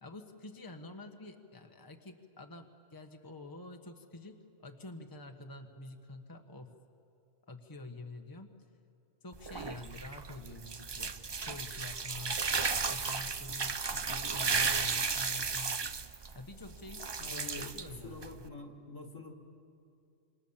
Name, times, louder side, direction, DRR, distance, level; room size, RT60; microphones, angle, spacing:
voice 1, 0.0-6.7 7.5-8.5 9.2-11.1 11.4-12.4 12.9-15.8 16.3-18.5, left 2 dB, 15° left, 6 dB, 1.3 m, -48 dB
sound 1, 9.3-18.5, right 5 dB, 40° right, 0.3 m, -34 dB
voice 2, 17.2-17.7 18.0-19.3, left 3 dB, 70° left, 5 dB, 2.4 m, -46 dB
28.5 x 26.5 x 7.3 m, 2.6 s
omnidirectional pair, 1.4 m